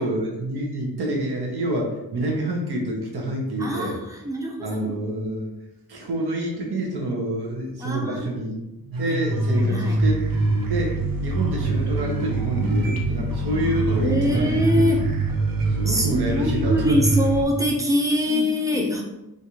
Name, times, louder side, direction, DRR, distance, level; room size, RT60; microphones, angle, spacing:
voice 1, 0.0-4.0 4.6-5.5 5.9-14.9 15.7-17.0 18.2-18.4 18.7-18.9, right 1 dB, 85° right, -1 dB, 0.9 m, -28 dB
voice 2, 3.6-5.0 7.8-8.2 9.1-9.2 9.5-10.0 13.4-15.0 15.9-19.0, equal, 10° right, 0 dB, 0.5 m, -24 dB
sound 1, 8.9-17.4, right 2 dB, 65° right, 0.5 m, -24 dB
3.2 x 2.5 x 2.8 m, 0.93 s
wide cardioid pair, 110°, 38 cm